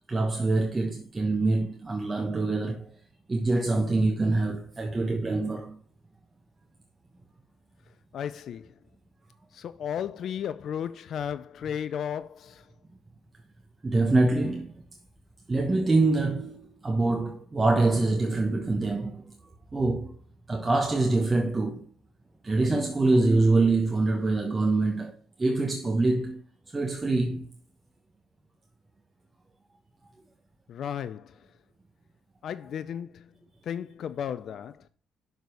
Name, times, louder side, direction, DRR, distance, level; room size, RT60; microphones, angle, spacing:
voice 1, 0.1-3.0 3.3-5.8 13.8-14.7 15.5-19.4 19.7-20.2 20.5-21.9 22.4-26.4 26.7-27.5, right 2 dB, 25° right, 1.1 m, -25 dB
voice 2, 8.1-8.7 9.5-12.7 30.7-31.5 32.4-33.3 33.6-34.8, left 9 dB, 60° left, 0.3 m, -34 dB
6.7 x 4.0 x 6.5 m
supercardioid pair, 65°, 0 cm